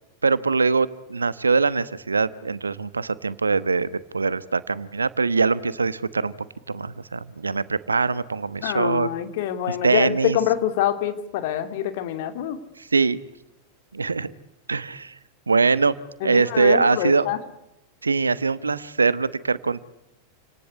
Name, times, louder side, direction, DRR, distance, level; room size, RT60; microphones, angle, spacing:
voice 1, 0.2-6.3 6.7-9.1 9.7-10.4 12.9-13.2 13.9-14.3 14.7-15.1 15.5-15.9 16.2-17.3 18.0-19.9, right 4 dB, 75° right, 17 dB, 1.1 m, -22 dB
voice 2, 8.6-12.6 16.2-17.4, left 11 dB, 50° left, 9 dB, 2.8 m, -25 dB
28.5 x 18.5 x 9.6 m, 0.91 s
figure-of-eight pair, 90°, 0 cm